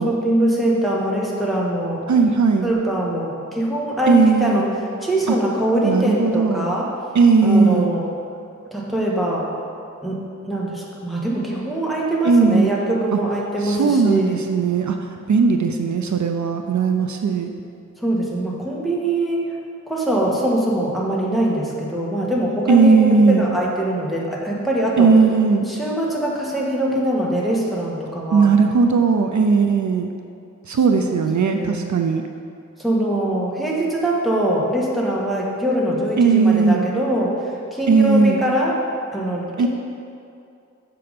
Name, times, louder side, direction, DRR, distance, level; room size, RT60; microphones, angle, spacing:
voice 1, 0.0-2.0 2.6-4.7 5.0-6.9 7.4-8.1 8.7-9.5 10.0-14.4 18.0-19.4 19.9-25.1 25.7-28.5 30.9-31.0 31.4-31.9 32.8-38.8 39.1-39.7, right 1 dB, ahead, -5 dB, 1.5 m, -23 dB
voice 2, 2.1-2.7 4.1-4.7 5.3-5.4 5.8-6.7 7.1-7.9 12.2-12.7 13.1-13.2 13.6-15.0 15.3-17.5 22.7-23.5 25.0-25.7 28.3-30.1 30.7-32.2 36.2-36.9 37.9-38.4 39.6-39.7, right 4 dB, 70° right, 5 dB, 0.5 m, -17 dB
6.8 x 6.0 x 5.0 m, 2.5 s
wide cardioid pair, 80°, 30 cm